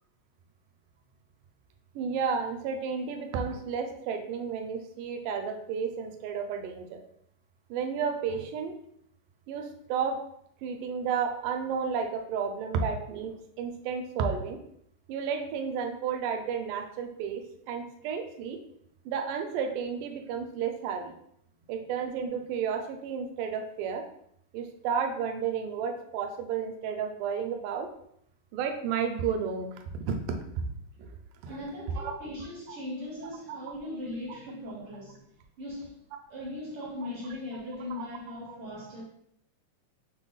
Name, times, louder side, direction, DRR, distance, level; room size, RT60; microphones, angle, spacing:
voice 1, 2.0-7.0 7.7-8.8 9.5-10.2 10.6-14.6 15.1-18.6 19.1-21.1 21.7-24.1 24.5-27.9 28.5-30.2 30.6-30.7 31.0-31.1 31.4-31.5 32.0-32.1 32.7-32.8 37.9-38.0, right 6 dB, 85° right, 2.2 m, -32 dB
voice 2, 31.5-35.3 35.6-36.0 36.3-39.0, left 1 dB, 65° right, 1.3 m, -39 dB
6.3 x 2.1 x 3.9 m
omnidirectional pair, 3.7 m